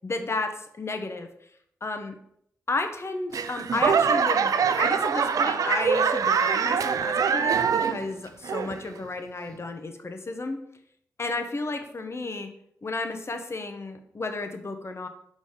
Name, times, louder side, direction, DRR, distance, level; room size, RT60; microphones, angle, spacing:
voice 1, 0.0-1.3 1.8-2.1 2.7-10.6 11.2-12.5 12.8-15.1, left 3 dB, 45° left, 6 dB, 1.0 m, -32 dB
Laughter / Clapping / Crowd, 3.3-8.1 8.4-9.0 9.5-9.6, right 6 dB, 70° right, 0.4 m, -24 dB
5.5 x 4.0 x 5.0 m, 0.70 s
supercardioid pair, 40°, 6 cm